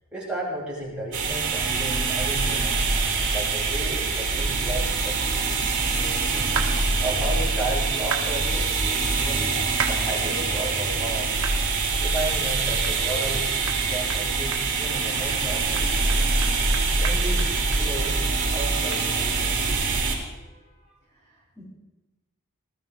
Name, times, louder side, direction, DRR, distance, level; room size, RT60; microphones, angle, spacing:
voice 1, 0.1-2.8 3.3-5.7 5.9-6.5 7.0-9.5 9.9-11.4 12.0-16.4 16.8-18.1 18.5-19.9, right 1 dB, 5° right, -8 dB, 6.8 m, -34 dB
sound 1, 1.1-20.2, right 3 dB, 60° right, 4.5 m, -24 dB
sound 2, 6.6-6.7 8.1-8.3 9.8-10.0 10.5-10.6 11.4-11.6 12.1-12.2 12.8-13.0 13.3-13.4 13.7-13.8 14.1-14.2 14.5-15.0 15.3-15.4 15.8-18.1 18.4-18.5 18.9-19.0, right 6 dB, 85° right, 1.5 m, -32 dB
voice 2, 20.3-20.8 21.1-21.6, left 1 dB, 15° left, -9 dB, 4.0 m, -55 dB
20.0 x 13.5 x 3.9 m, 1.1 s
head